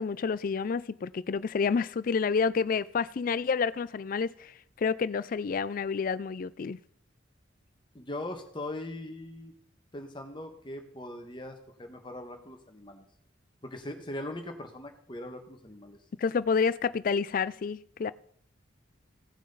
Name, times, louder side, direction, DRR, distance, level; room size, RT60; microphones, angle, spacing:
voice 1, 0.0-6.8 16.2-18.1, left 5 dB, 45° left, 18 dB, 0.3 m, -29 dB
voice 2, 7.9-9.5 9.9-13.0 13.6-16.0, left 1 dB, 25° left, 4 dB, 1.4 m, -40 dB
17.0 x 6.2 x 4.0 m, 0.65 s
head